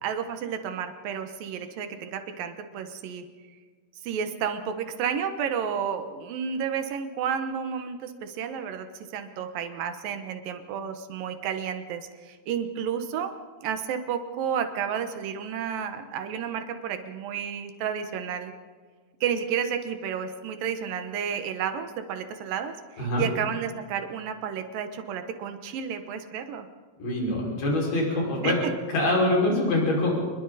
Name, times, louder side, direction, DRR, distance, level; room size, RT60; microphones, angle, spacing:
voice 1, 0.0-3.2 4.0-13.3 13.6-18.5 19.2-26.7 28.4-28.7, right 7 dB, 75° right, 7 dB, 2.1 m, -31 dB
voice 2, 27.0-28.6 28.9-30.1, left 1 dB, 45° left, -2 dB, 6.9 m, -24 dB
29.5 x 21.5 x 4.1 m, 1.5 s
omnidirectional pair, 5.6 m